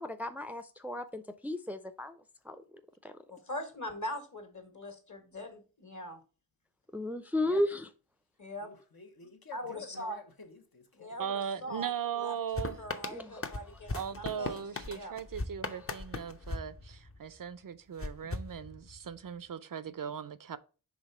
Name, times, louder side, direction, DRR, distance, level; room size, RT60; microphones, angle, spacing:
voice 1, 0.0-2.2 2.5-2.6 3.0-3.1 6.9-7.9 13.1-13.4, left 1 dB, 5° right, 0.5 m, -34 dB
voice 2, 3.3-6.2 8.4-8.7 9.5-10.2 10.9-14.6 14.9-15.1, equal, 55° left, 1.6 m, -42 dB
voice 3, 8.6-11.1, left 5 dB, 75° left, 1.1 m, -50 dB
voice 4, 11.2-12.8 13.9-20.6, right 8 dB, 60° right, 0.5 m, -38 dB
sound 1, 12.6-17.4 18.0-19.2, left 3 dB, 35° left, 0.7 m, -39 dB
5.0 x 3.4 x 5.4 m
wide cardioid pair, 50°, 37 cm